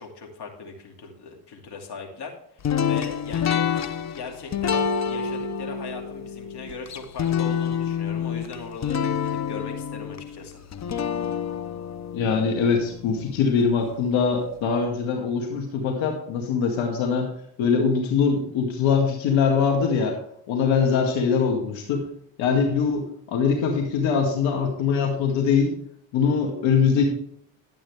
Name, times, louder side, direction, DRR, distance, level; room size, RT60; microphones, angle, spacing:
voice 1, 0.0-3.6 4.1-10.6, left 4 dB, 55° left, 2 dB, 2.6 m, -39 dB
sound 1, 2.6-13.7, left 7 dB, 35° left, 0.8 m, -28 dB
voice 2, 12.1-17.3 17.6-20.2 20.5-22.0 22.4-25.7 26.1-27.0, left 6 dB, 80° left, 2 dB, 2.1 m, -22 dB
11.5 x 8.7 x 3.4 m, 0.69 s
cardioid pair, 100°, 46 cm